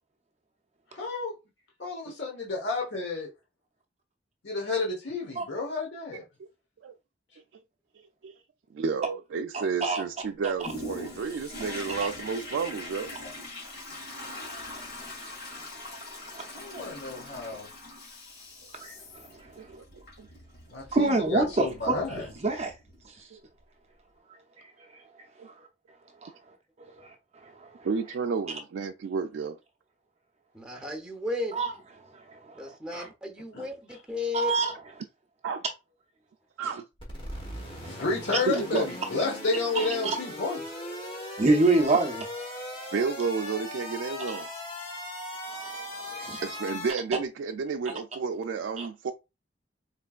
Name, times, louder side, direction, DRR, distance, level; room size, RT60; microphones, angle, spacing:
voice 1, 0.9-1.3 1.8-3.3 4.4-6.2 16.6-17.7 20.7-22.3 32.9-33.1 33.5-34.0 37.8-40.6, left 3 dB, 80° left, 1.2 m, -31 dB
voice 2, 8.7-13.1 19.6-20.3 23.3-23.4 25.4-25.5 27.8-29.6 35.4-35.6 36.6-36.8 38.5-38.9 42.9-44.5 46.4-49.1, right 5 dB, 90° right, 0.4 m, -31 dB
voice 3, 9.5-10.0 16.3-16.5 18.7-18.9 20.9-22.0 22.4-22.7 26.2-26.3 27.0-27.1 31.5-31.7 34.3-34.7 39.8-40.2 41.4-42.1 44.3-44.4 45.6-46.4 48.8-48.9, right 3 dB, 35° right, 0.6 m, -25 dB
Toilet flush, 10.6-23.0 23.6-23.7, left 1 dB, 60° left, 2.0 m, -42 dB
voice 4, 30.5-31.6 32.5-34.5, left 3 dB, 5° right, 0.8 m, -34 dB
sound 1, 37.0-46.9, left 1 dB, 25° left, 1.3 m, -39 dB
4.4 x 3.3 x 2.4 m
head